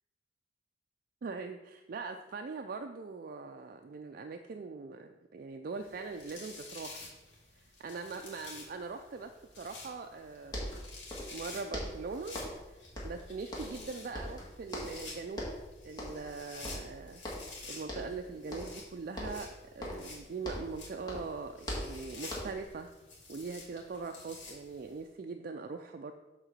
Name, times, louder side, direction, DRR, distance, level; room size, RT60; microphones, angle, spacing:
voice 1, 1.2-7.1 7.8-9.3 9.6-10.7 11.3-12.4 12.7-15.5 15.8-17.2 17.7-22.9 23.3-26.1, right 4 dB, 50° right, 6 dB, 0.4 m, -42 dB
sound 1, 5.8-25.0, left 3 dB, 80° left, 2.3 m, -50 dB
sound 2, 10.2-10.3 10.5-11.4 11.7-12.7 13.0-13.9 14.1-15.1 15.3-15.7 16.0-16.3 16.6-17.6 17.9-18.2 18.5-18.9 19.2-20.8 21.1-22.7, equal, 20° left, 1.8 m, -41 dB
7.6 x 3.7 x 6.6 m, 1.1 s
head